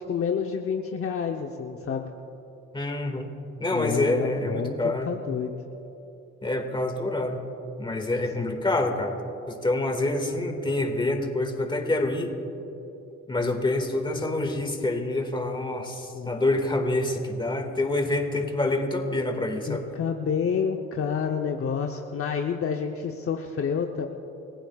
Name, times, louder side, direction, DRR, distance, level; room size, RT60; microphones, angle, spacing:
voice 1, 0.0-2.1 3.7-5.5 8.4-8.5 16.1-16.4 19.7-24.1, left 6 dB, 45° left, 3 dB, 0.9 m, -29 dB
voice 2, 2.7-3.3 3.6-5.1 6.4-7.4 7.8-9.2 9.5-12.3 13.3-19.9, left 2 dB, 15° left, 4 dB, 2.0 m, -27 dB
30.0 x 15.5 x 2.4 m, 3.0 s
cardioid pair, 90°, 30 cm